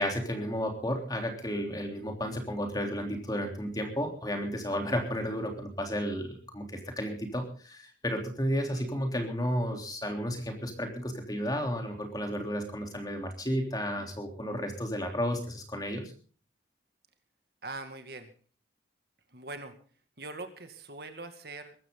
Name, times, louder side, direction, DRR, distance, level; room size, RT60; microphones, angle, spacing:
voice 1, 0.0-16.1, equal, 20° left, 3 dB, 3.5 m, -32 dB
voice 2, 17.6-18.3 19.3-19.7 20.2-21.7, right 2 dB, 60° right, 7 dB, 2.2 m, -42 dB
23.0 x 13.0 x 3.9 m, 0.41 s
head